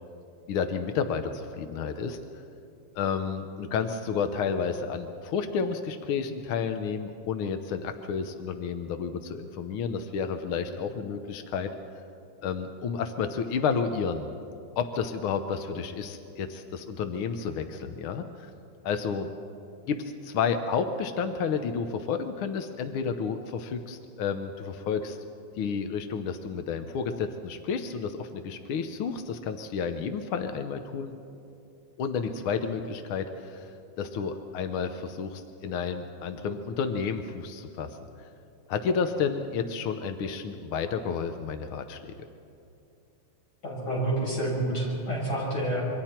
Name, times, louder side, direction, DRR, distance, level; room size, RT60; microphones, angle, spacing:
voice 1, 0.5-2.2 2.9-11.7 12.4-14.3 14.8-18.5 18.8-19.3 19.8-25.2 25.6-31.1 32.0-37.9 38.2-38.3 38.7-42.1, left 6 dB, 75° left, 7 dB, 1.2 m, -31 dB
voice 2, 43.6-45.8, right 1 dB, 30° left, -5 dB, 6.9 m, -28 dB
27.0 x 23.5 x 4.4 m, 2.6 s
omnidirectional pair, 3.4 m